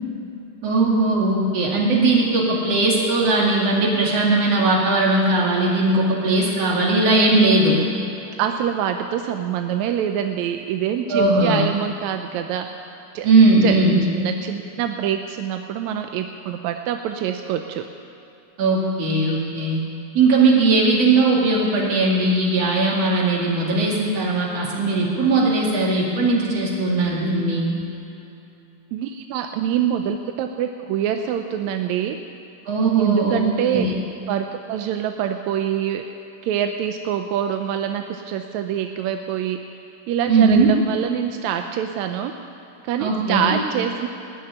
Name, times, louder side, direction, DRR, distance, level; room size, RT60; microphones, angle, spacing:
voice 1, 0.6-7.8 11.1-11.6 13.2-14.0 18.6-19.8 20.1-27.7 32.7-33.4 33.7-33.9 40.3-40.7 43.0-43.4, right 3 dB, 50° right, -3 dB, 3.4 m, -18 dB
voice 2, 8.4-12.7 13.1-13.3 13.6-13.8 14.1-17.8 28.9-32.2 33.0-33.9 34.3-36.0 36.4-39.6 40.1-42.3 42.8-44.1, right 9 dB, 75° right, 5 dB, 1.7 m, -25 dB
19.5 x 6.6 x 9.9 m, 2.9 s
omnidirectional pair, 3.8 m